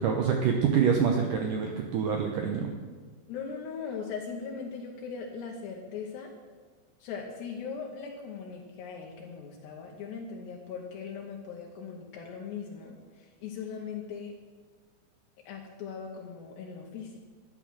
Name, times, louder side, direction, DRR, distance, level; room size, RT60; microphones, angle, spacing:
voice 1, 0.0-2.7, right 7 dB, 80° right, 2 dB, 1.9 m, -26 dB
voice 2, 3.3-6.3 7.0-14.3 15.5-17.2, left 6 dB, 75° left, -1 dB, 3.2 m, -39 dB
13.0 x 9.7 x 6.4 m, 1.5 s
omnidirectional pair, 5.1 m